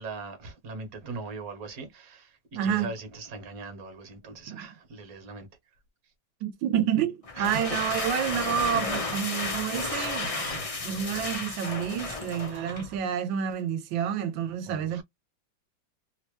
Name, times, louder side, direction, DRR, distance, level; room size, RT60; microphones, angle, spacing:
voice 1, 0.0-5.5 7.4-7.6 12.5-13.0 14.7-15.0, right 4 dB, 55° right, 1.5 m, -40 dB
voice 2, 2.5-2.9 4.5-4.7 6.4-15.0, right 9 dB, 85° right, 1.3 m, -29 dB
sound 1, 7.2-13.0, left 3 dB, 45° left, 0.4 m, -33 dB
3.2 x 2.8 x 3.1 m
omnidirectional pair, 2.0 m